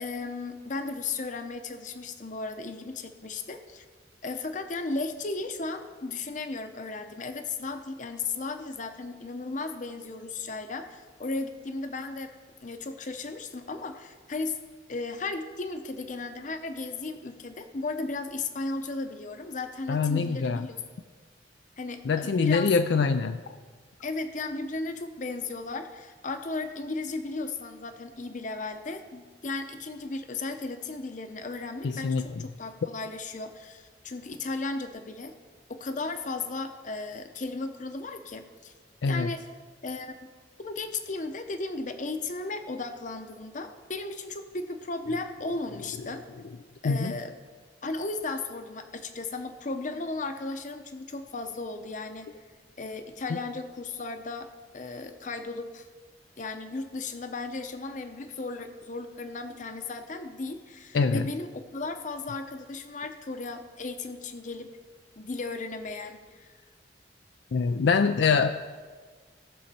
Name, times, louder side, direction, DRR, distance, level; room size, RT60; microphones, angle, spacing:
voice 1, 0.0-3.8 4.2-12.3 12.6-14.6 14.9-20.7 21.8-22.7 24.0-35.3 35.7-38.7 39.1-39.4 39.8-40.1 40.6-46.2 46.8-47.3 47.8-52.3 52.8-54.5 54.7-55.9 56.4-64.7 65.2-66.5, left 3 dB, 45° left, 7 dB, 0.8 m, -35 dB
voice 2, 19.9-20.7 22.0-23.4 31.8-32.4 39.0-39.3 46.8-47.1 53.3-53.4 60.9-61.3 67.5-68.5, left 5 dB, 70° left, 8 dB, 0.4 m, -24 dB
18.0 x 6.4 x 4.3 m, 1.5 s
head